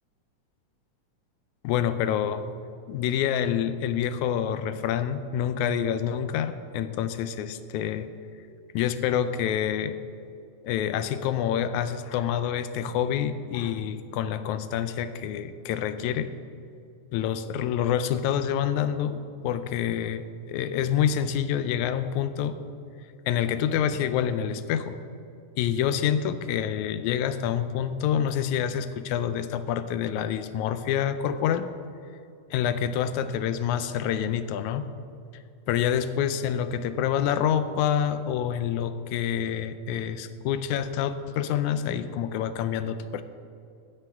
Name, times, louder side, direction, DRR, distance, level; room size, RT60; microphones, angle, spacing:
voice 1, 1.6-2.4 2.9-8.1 8.7-10.0 10.6-16.3 17.1-22.6 23.3-25.0 25.6-31.7 32.5-34.9 35.7-43.2, left 9 dB, 85° left, 11 dB, 2.0 m, -27 dB
16.0 x 11.0 x 3.5 m, 2.4 s
omnidirectional pair, 3.4 m